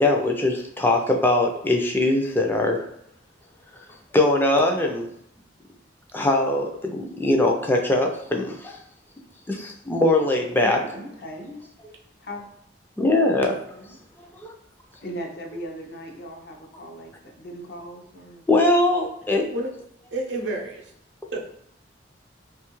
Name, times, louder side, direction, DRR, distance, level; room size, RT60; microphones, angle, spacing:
voice 1, 0.0-2.8 4.1-5.1 6.1-8.8 9.5-10.8 13.0-13.6 14.4-14.5 18.5-19.5, left 2 dB, 10° left, 1 dB, 0.3 m, -21 dB
voice 2, 10.6-11.6 12.2-12.5 13.4-14.0 15.0-18.4, equal, 60° left, 1 dB, 0.6 m, -38 dB
voice 3, 20.1-20.9 21.3-21.4, right 2 dB, 80° right, 1 dB, 0.6 m, -29 dB
2.7 x 2.3 x 3.0 m, 0.74 s
head